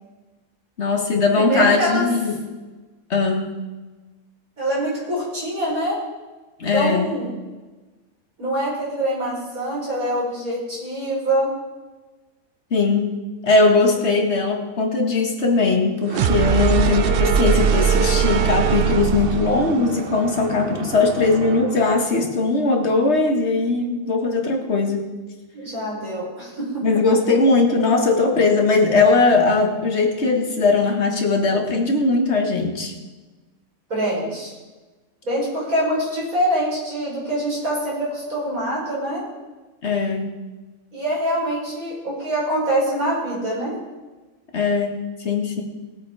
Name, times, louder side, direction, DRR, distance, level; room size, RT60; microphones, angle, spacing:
voice 1, 0.8-2.3 3.1-3.5 6.6-7.1 12.7-13.1 13.4-25.0 26.8-32.9 39.8-40.3 44.5-45.6, left 3 dB, 50° left, 3 dB, 1.9 m, -19 dB
voice 2, 1.3-2.1 4.6-6.0 6.7-7.3 8.4-11.5 25.5-26.9 33.9-34.5 35.2-39.2 40.9-43.8, right 1 dB, 75° right, -6 dB, 6.1 m, -24 dB
sound 1, 16.1-21.9, right 7 dB, 55° right, 0.7 m, -21 dB
18.0 x 8.2 x 4.8 m, 1.2 s
omnidirectional pair, 1.5 m